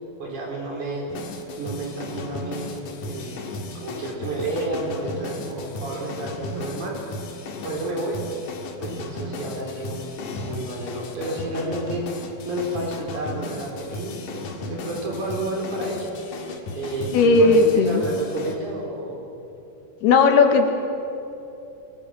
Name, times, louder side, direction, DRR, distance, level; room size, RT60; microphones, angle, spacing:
voice 1, 0.2-1.1 1.6-3.5 3.8-7.0 7.6-8.2 8.8-16.1 16.8-19.2, right 1 dB, 50° right, -1 dB, 5.3 m, -31 dB
sound 1, 1.1-18.6, left 2 dB, 60° left, 2.7 m, -35 dB
voice 2, 17.1-18.0 20.0-20.7, left 4 dB, 80° left, 5 dB, 3.6 m, -16 dB
24.5 x 18.5 x 7.7 m, 2.8 s
omnidirectional pair, 4.5 m